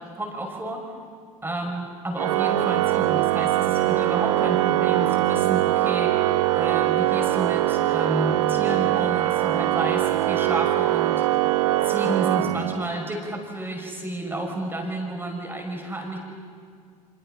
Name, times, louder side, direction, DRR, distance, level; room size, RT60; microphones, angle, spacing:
voice 1, 0.2-0.8 1.4-6.1 6.5-11.2 11.8-16.2, right 1 dB, 10° right, 0 dB, 5.9 m, -31 dB
Organ, 2.2-13.1, right 15 dB, 70° right, 0.8 m, -22 dB
28.5 x 26.5 x 5.6 m, 2.1 s
hypercardioid pair, 70°, 19 cm